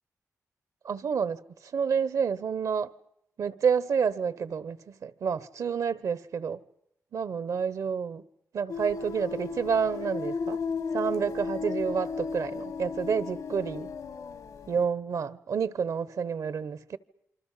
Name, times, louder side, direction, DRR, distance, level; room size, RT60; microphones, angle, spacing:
voice 1, 0.8-1.4 1.7-2.9 3.4-6.6 7.1-8.2 8.5-10.6 10.9-13.9 14.7-17.0, right 6 dB, 75° right, 1.0 m, -29 dB
sound 1, 8.7-14.9, left 5 dB, 80° left, 1.6 m, -35 dB
27.0 x 25.0 x 5.7 m
wide cardioid pair, 125°, 6 cm